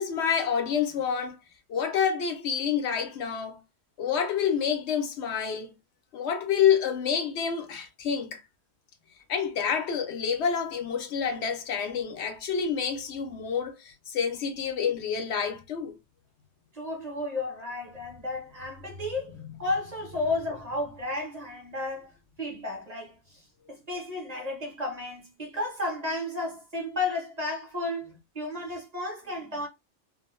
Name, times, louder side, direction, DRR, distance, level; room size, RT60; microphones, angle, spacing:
voice 1, 0.0-1.4 1.7-3.6 4.0-5.7 6.1-8.4 9.3-15.9 19.3-19.5, left 7 dB, 70° left, 0.8 m, -28 dB
voice 2, 16.7-19.3 19.6-23.4 23.7-29.7, left 2 dB, 40° right, 0.8 m, -33 dB
2.3 x 2.2 x 2.9 m
omnidirectional pair, 1.3 m